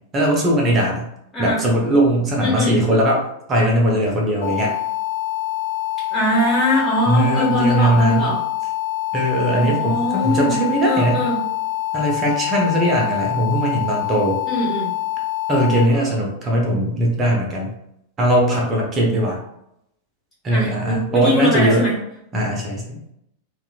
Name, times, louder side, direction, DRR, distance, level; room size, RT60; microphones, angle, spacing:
voice 1, 0.1-1.1 1.4-3.2 3.5-4.7 7.1-8.3 9.1-11.2 11.9-14.4 15.5-17.7 18.2-19.4 20.4-21.8 22.3-23.0, right 1 dB, 25° right, -1 dB, 0.8 m, -19 dB
voice 2, 1.3-1.7 2.4-2.8 6.1-8.4 9.5-11.4 14.5-14.9 20.5-21.9, equal, 10° left, -8 dB, 1.4 m, -21 dB
sound 1, 4.4-15.8, left 14 dB, 70° left, 0.6 m, -25 dB
2.9 x 2.4 x 2.3 m, 0.78 s
figure-of-eight pair, 90°, 0 cm